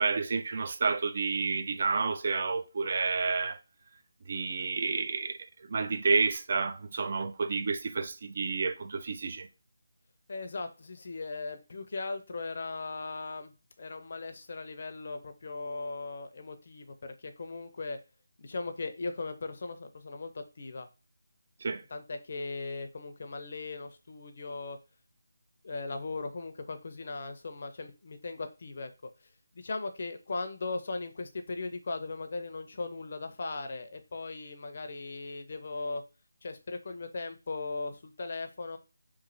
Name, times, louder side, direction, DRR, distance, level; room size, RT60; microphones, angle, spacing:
voice 1, 0.0-3.6 4.3-5.4 5.7-9.5 21.6-21.8, right 4 dB, 45° right, 0.3 m, -30 dB
voice 2, 10.3-13.5 13.8-18.0 18.4-20.9 21.9-24.8 25.6-28.9 29.5-36.0 36.4-38.8, left 3 dB, 50° left, 0.5 m, -38 dB
3.1 x 2.4 x 2.6 m
figure-of-eight pair, 160°, 0 cm